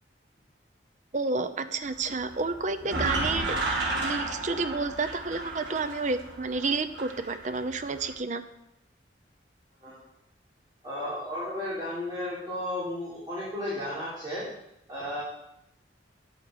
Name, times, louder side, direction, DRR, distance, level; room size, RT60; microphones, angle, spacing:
voice 1, 1.1-3.6 4.0-8.4, right 3 dB, 40° right, 10 dB, 0.6 m, -30 dB
sound 1, 1.8-8.1, right 2 dB, 75° right, 2.1 m, -33 dB
voice 2, 10.8-14.4 14.9-15.2, left 1 dB, 25° right, -11 dB, 4.1 m, -33 dB
10.5 x 8.7 x 4.8 m, 0.82 s
head